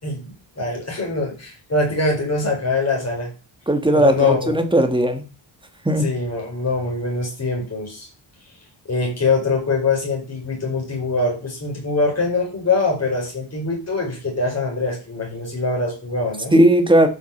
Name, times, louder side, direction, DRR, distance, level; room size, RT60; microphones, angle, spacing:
voice 1, 0.0-3.3 3.9-4.6 6.0-8.1 8.9-16.6, left 3 dB, 35° left, -1 dB, 5.5 m, -23 dB
voice 2, 3.7-5.2 5.8-6.1 16.5-17.1, right 1 dB, 10° right, 7 dB, 1.5 m, -16 dB
12.0 x 6.6 x 6.9 m, 0.35 s
wide cardioid pair, 170°, 45 cm